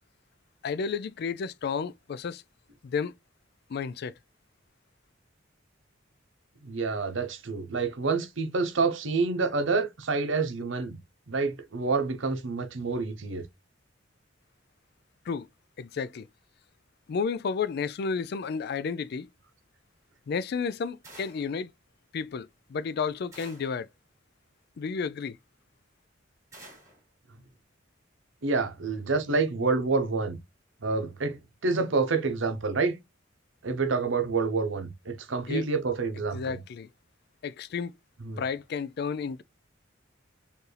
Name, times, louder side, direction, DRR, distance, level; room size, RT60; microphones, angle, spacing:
voice 1, 0.6-2.4 2.8-3.1 3.7-4.1 15.3-15.5 15.8-16.3 17.1-19.3 20.3-21.7 22.1-23.9 24.8-25.4 35.5-35.7 36.3-36.9 37.4-37.9 38.4-39.4, left 5 dB, 55° left, 0.3 m, -32 dB
voice 2, 6.6-11.0 11.3-13.4 28.4-30.4 30.8-33.0 33.6-36.6 38.2-38.4, right 4 dB, 70° right, 0.8 m, -28 dB
sound 1, 21.0-21.6 23.3-23.8 26.5-27.0, right 2 dB, 15° right, 2.3 m, -50 dB
4.5 x 2.7 x 3.2 m
head